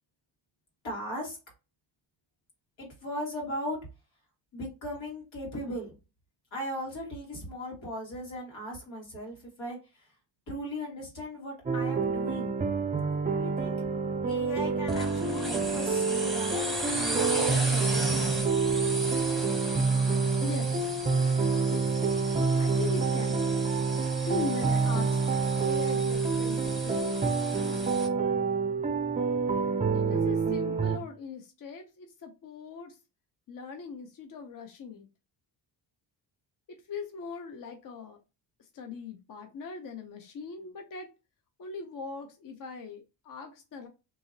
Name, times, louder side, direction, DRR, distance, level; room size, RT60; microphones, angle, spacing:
voice 1, 0.8-1.4 2.8-3.8 4.5-6.0 6.5-9.8 10.5-12.6 13.3-13.8 14.2-18.6, equal, 85° left, -1 dB, 1.9 m, -38 dB
sound 1, 11.7-31.0, right 4 dB, 20° right, 0.4 m, -27 dB
sound 2, 14.9-28.1, right 1 dB, ahead, 0.7 m, -36 dB
voice 2, 20.4-20.8 21.7-21.8 22.6-23.4 24.3-25.2 25.6-27.2 29.9-33.0 33.5-35.1 36.7-38.2 38.7-41.1 41.6-43.9, left 4 dB, 45° left, 5 dB, 0.6 m, -39 dB
2.9 x 2.7 x 2.6 m, 0.29 s
cardioid pair, 90°, 45 cm